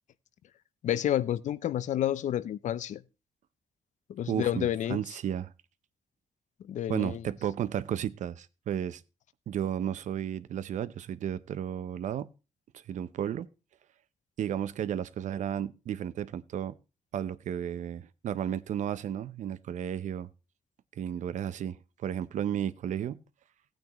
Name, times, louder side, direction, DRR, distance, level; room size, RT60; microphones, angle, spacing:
voice 1, 0.8-3.0 4.1-5.0 6.7-7.2, left 11 dB, 85° left, 0.6 m, -29 dB
voice 2, 4.3-5.5 6.9-9.0 9.5-12.3 12.7-13.5 14.4-16.8 17.1-20.3 21.0-21.8 22.0-23.2, right 10 dB, 85° right, 0.6 m, -33 dB
16.0 x 8.9 x 3.0 m
cardioid pair, 100°, 12 cm